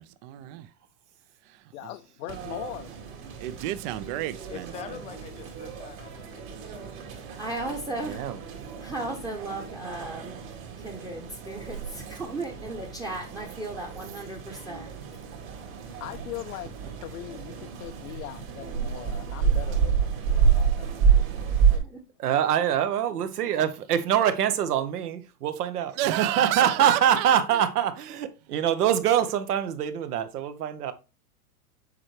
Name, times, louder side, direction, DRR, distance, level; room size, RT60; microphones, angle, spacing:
voice 1, 0.3-0.6 1.5-1.9 3.4-5.0 26.0-27.6, right 14 dB, 40° right, 0.5 m, -31 dB
voice 2, 1.7-2.9 15.8-21.8, left 14 dB, 70° left, 0.6 m, -41 dB
sound 1, 2.3-21.8, right 7 dB, 60° right, 2.5 m, -29 dB
voice 3, 4.5-7.1, left 9 dB, 15° left, 0.4 m, -44 dB
voice 4, 7.3-8.2 8.8-10.5 10.8-14.9 21.8-22.0, right 2 dB, 10° right, 0.9 m, -36 dB
voice 5, 8.1-8.4 22.2-30.9, right 9 dB, 80° right, 1.1 m, -25 dB
7.5 x 4.6 x 3.1 m
hypercardioid pair, 120°, 45 cm